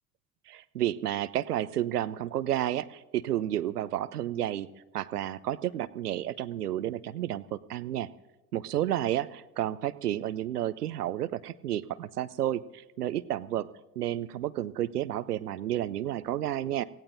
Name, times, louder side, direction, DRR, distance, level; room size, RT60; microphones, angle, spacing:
voice 1, 0.5-4.7 4.9-8.1 8.5-13.7 14.0-16.8, right 12 dB, 90° right, 17 dB, 0.6 m, -31 dB
25.0 x 17.0 x 2.6 m, 1.1 s
hypercardioid pair, 70°, 46 cm